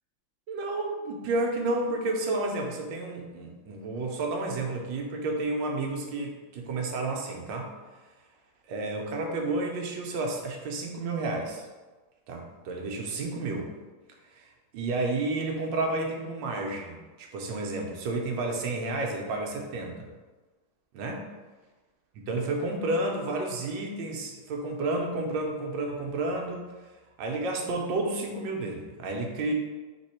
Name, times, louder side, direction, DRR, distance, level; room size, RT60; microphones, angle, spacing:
voice 1, 0.5-7.7 8.7-11.7 12.3-13.7 14.3-14.4 14.7-20.1 20.9-21.3 22.1-26.6 27.2-29.5, right 2 dB, 75° right, 1 dB, 1.3 m, -31 dB
4.1 x 3.0 x 4.3 m, 1.3 s
omnidirectional pair, 2.2 m